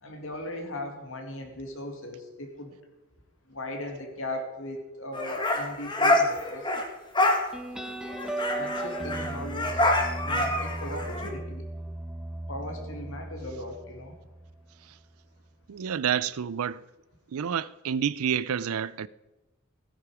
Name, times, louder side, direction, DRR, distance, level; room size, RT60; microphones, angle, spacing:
voice 1, 0.0-2.8 3.5-6.7 8.6-9.9 10.2-11.6 12.5-14.2, left 1 dB, 65° left, 2.4 m, -38 dB
sound 1, 5.1-6.9 7.2-7.4 7.8-7.9 8.1-11.3, left 1 dB, 20° left, 1.4 m, -26 dB
sound 2, 7.5-14.7, right 2 dB, 5° right, 1.0 m, -37 dB
voice 2, 15.7-16.8 17.3-19.1, right 8 dB, 85° right, 0.4 m, -29 dB
16.0 x 9.8 x 4.9 m
head